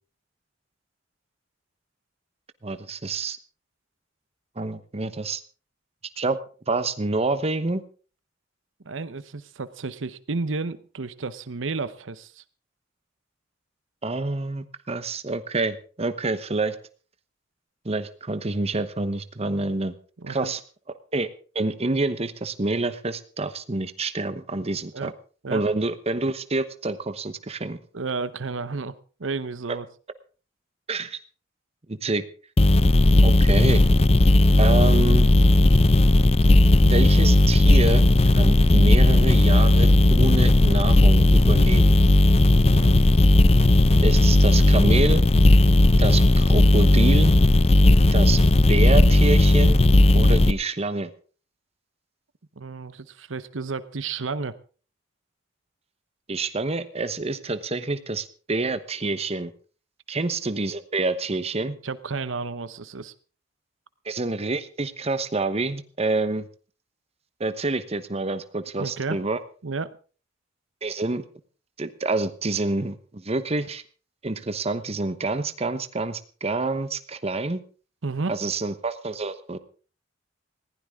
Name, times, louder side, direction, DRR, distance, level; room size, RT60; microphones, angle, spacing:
voice 1, 2.6-3.4 4.6-5.4 6.2-6.4 6.7-7.8 14.0-16.8 17.8-19.9 20.3-20.6 21.1-21.3 21.5-25.1 25.5-27.8 30.9-31.2 31.9-32.3 33.2-33.8 34.6-35.3 36.8-38.1 38.3-41.9 44.0-45.2 46.0-47.3 48.1-48.4 48.7-49.8 50.1-51.1 56.3-59.5 60.1-61.8 64.0-66.5 67.4-69.4 70.8-71.2 71.8-73.8 74.2-77.6 78.3-79.6, right 2 dB, 30° right, 12 dB, 1.0 m, -27 dB
voice 2, 8.8-12.4 20.2-20.5 24.9-25.1 25.4-25.6 27.9-28.9 29.2-29.9 42.7-43.0 52.6-54.5 61.8-63.1 68.8-69.2 69.6-69.9 78.0-78.3, right 4 dB, 80° right, 15 dB, 0.9 m, -31 dB
sound 1, 32.6-50.5, left 1 dB, 30° left, 0.6 m, -16 dB
20.0 x 15.5 x 3.6 m, 0.38 s
head